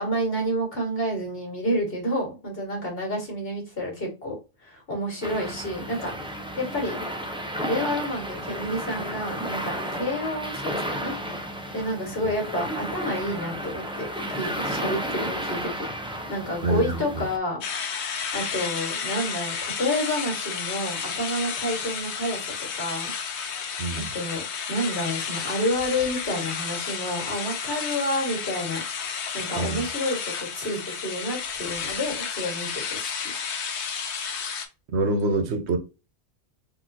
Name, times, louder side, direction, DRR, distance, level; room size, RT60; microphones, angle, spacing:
voice 1, 0.0-4.4 4.6-6.1 6.6-7.0 7.6-10.6 10.9-11.1 11.7-15.8 16.3-17.6 18.3-23.1 23.9-24.4 24.7-28.8 29.3-33.3, equal, 55° left, 2.2 m, -29 dB
sound 1, 5.2-17.4, equal, 5° right, 0.6 m, -33 dB
voice 2, 16.6-17.0 23.8-24.1 29.6-29.8 34.9-35.8, right 2 dB, 75° right, 1.1 m, -25 dB
sound 2, 17.6-34.7, left 6 dB, 75° left, 1.1 m, -32 dB
4.2 x 3.1 x 2.8 m
omnidirectional pair, 1.2 m